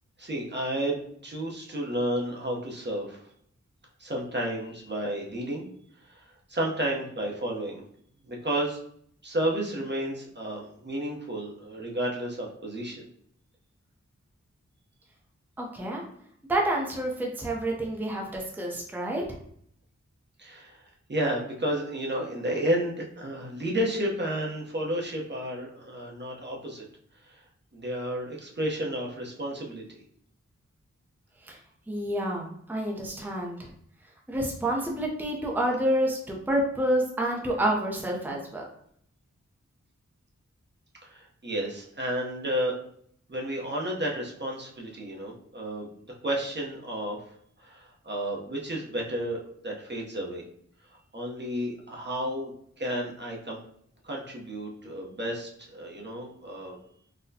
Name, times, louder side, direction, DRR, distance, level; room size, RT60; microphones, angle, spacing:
voice 1, 0.2-3.3 4.0-5.7 6.0-7.8 8.3-8.8 9.2-13.1 20.4-26.8 27.2-27.4 27.7-30.0 41.0-42.8 43.3-47.2 47.6-50.4 51.1-52.5 52.8-53.6 54.0-56.8, right 1 dB, 35° right, -2 dB, 0.8 m, -32 dB
voice 2, 15.6-16.0 16.5-19.2 31.4-31.6 31.9-33.7 34.3-38.6, right 1 dB, 5° right, -1 dB, 0.6 m, -28 dB
4.0 x 2.1 x 2.7 m, 0.66 s
wide cardioid pair, 50°, 30 cm